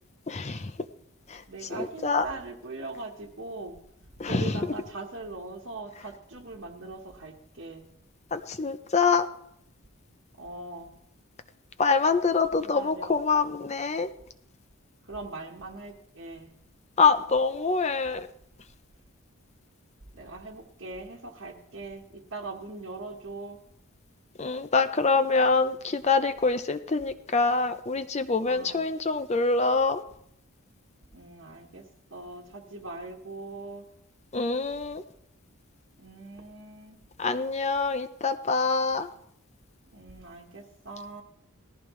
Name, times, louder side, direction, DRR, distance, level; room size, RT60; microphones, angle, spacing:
voice 1, 0.3-0.7 1.3-1.4 1.7-2.3 4.2-4.6 8.3-9.3 11.8-14.1 17.0-18.3 24.4-30.0 34.3-35.0 37.2-39.1, left 4 dB, 30° left, 11 dB, 0.5 m, -25 dB
voice 2, 1.5-3.8 4.2-7.8 10.3-10.9 12.7-13.2 15.0-16.5 20.1-23.6 28.4-28.9 31.1-31.8 32.1-33.9 36.0-37.0 39.9-41.2, right 3 dB, 55° right, 0 dB, 1.3 m, -41 dB
19.0 x 14.5 x 3.2 m, 0.74 s
head